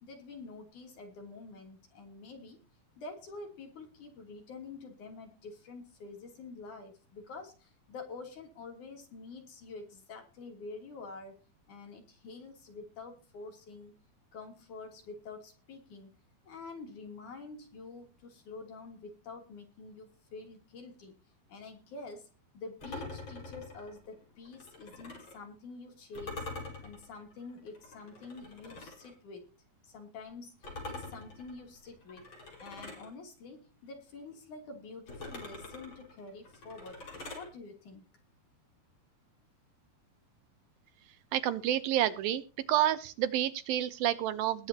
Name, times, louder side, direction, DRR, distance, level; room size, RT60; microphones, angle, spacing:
voice 1, 0.0-2.6 3.0-11.4 11.7-14.0 14.3-16.1 16.5-21.1 21.5-22.3 22.5-26.5 26.8-29.5 29.8-32.3 32.6-37.1 37.3-38.1, left 3 dB, 55° left, 3 dB, 4.4 m, -47 dB
sound 1, 22.8-25.4 26.1-29.1 30.6-33.1 35.1-37.5, left 2 dB, 30° left, 5.6 m, -45 dB
voice 2, 41.3-42.4 42.7-44.7, right 12 dB, 75° right, 12 dB, 2.5 m, -29 dB
20.5 x 8.5 x 2.9 m, 0.32 s
omnidirectional pair, 4.4 m